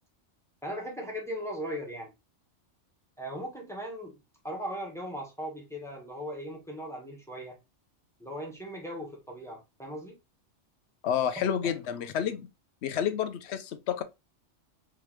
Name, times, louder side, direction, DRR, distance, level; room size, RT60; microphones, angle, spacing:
voice 1, 0.6-2.1 3.2-4.2 4.4-7.6 8.2-10.2 11.4-11.7, equal, ahead, 1.2 m, -38 dB
voice 2, 11.0-12.5 12.8-14.0, left 9 dB, 70° left, 0.9 m, -29 dB
3.7 x 3.2 x 3.1 m
omnidirectional pair, 1.2 m